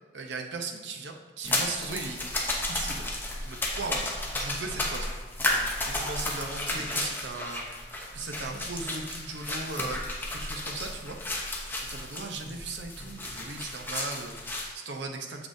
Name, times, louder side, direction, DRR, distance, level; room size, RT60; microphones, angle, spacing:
voice 1, 0.1-2.2 2.7-3.1 3.4-4.1 4.3-5.1 5.9-7.6 8.1-10.0 10.3-11.2 11.9-15.5, right 3 dB, 85° right, 3 dB, 0.7 m, -37 dB
sound 1, 1.4-14.7, left 1 dB, 10° left, 0.8 m, -33 dB
7.1 x 6.6 x 2.7 m, 1.3 s
head